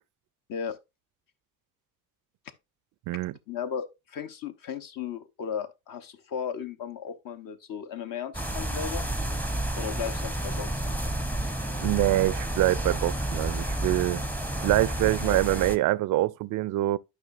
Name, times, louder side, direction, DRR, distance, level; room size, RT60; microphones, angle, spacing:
voice 1, 3.5-9.1 9.8-11.0 15.2-15.4, left 7 dB, 45° left, 1.0 m, -35 dB
sound 1, 8.3-15.8, right 1 dB, 5° left, 0.8 m, -30 dB
voice 2, 11.8-14.2 14.6-17.0, right 17 dB, 45° right, 0.5 m, -25 dB
11.5 x 5.8 x 2.5 m
figure-of-eight pair, 50°, 47 cm